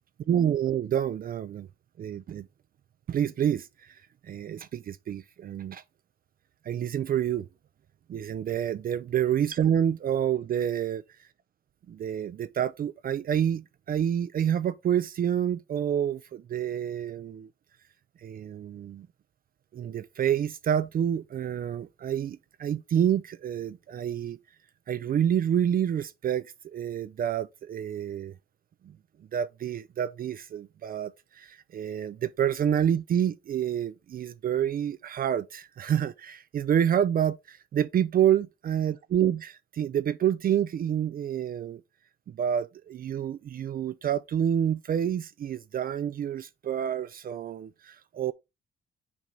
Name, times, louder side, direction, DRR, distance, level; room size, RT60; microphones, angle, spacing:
voice 1, 0.3-1.7 2.0-2.5 3.1-3.7 4.2-5.8 6.7-7.5 8.1-11.0 11.9-17.5 18.2-19.1 19.7-24.4 24.9-28.3 29.3-41.8 42.3-48.3, right 9 dB, 45° right, 0.4 m, -28 dB
6.1 x 4.4 x 3.8 m
cardioid pair, 90°, 20 cm